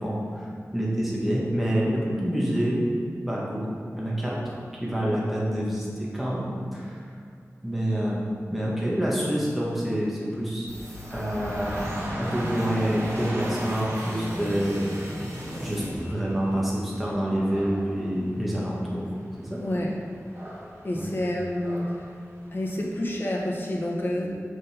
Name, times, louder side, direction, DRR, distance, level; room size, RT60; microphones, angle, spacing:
voice 1, 0.0-2.8 3.1-4.5 4.8-7.0 7.6-10.7 11.1-11.9 12.2-14.9 15.6-19.0 19.4-19.6 20.9-21.1, equal, ahead, -6 dB, 1.5 m, -27 dB
sound 1, 10.7-16.7, equal, 75° right, 1.5 m, -38 dB
Dog / Rain, 10.9-23.0, equal, 50° right, 1.7 m, -39 dB
voice 2, 19.6-19.9 20.8-22.1 22.5-24.3, left 1 dB, 40° left, -3 dB, 1.2 m, -28 dB
6.2 x 5.3 x 4.4 m, 2.3 s
wide cardioid pair, 80°, 5 cm